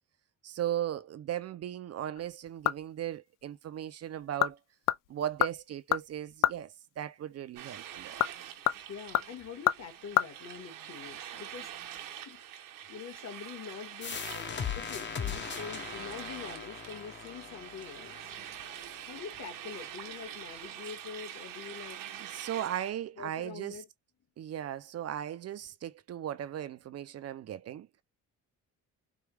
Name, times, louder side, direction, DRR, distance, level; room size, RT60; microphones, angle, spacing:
voice 1, 0.4-4.6 5.1-8.2 18.6-19.1 22.2-23.8 24.4-27.9, right 11 dB, 50° right, 0.5 m, -37 dB
sound 1, 2.2-3.1 3.4-3.5 4.1-4.6 4.9-6.6 7.9-10.3 10.5-10.6, left 14 dB, 80° left, 0.5 m, -30 dB
sound 2, 7.6-22.9, right 10 dB, 90° right, 1.1 m, -45 dB
voice 2, 8.6-18.2 19.1-22.0 23.2-23.9, left 7 dB, 55° left, 1.8 m, -45 dB
sound 3, 14.0-19.4, left 7 dB, 35° left, 0.9 m, -39 dB
4.7 x 2.3 x 3.3 m
cardioid pair, 105°, 32 cm